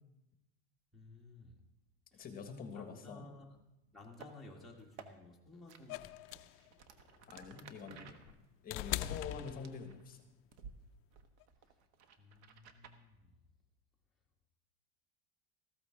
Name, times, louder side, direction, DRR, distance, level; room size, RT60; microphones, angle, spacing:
voice 1, 0.9-1.6 2.1-2.3 2.7-3.6 3.9-6.1 7.5-8.4 12.2-13.3, left 2 dB, ahead, -4 dB, 1.6 m, -56 dB
voice 2, 2.1-3.3 7.3-8.1 8.6-10.2, left 5 dB, 25° left, 5 dB, 1.4 m, -46 dB
sound 1, 4.0-4.3 4.8-5.1 5.7-5.8 6.3-10.1 10.5-10.8 11.1-13.0, right 6 dB, 75° right, 1.3 m, -56 dB
sound 2, 5.9-10.2 11.4-11.5, left 15 dB, 40° left, 0.4 m, -42 dB
14.5 x 13.5 x 3.7 m, 0.95 s
supercardioid pair, 145°, 34 cm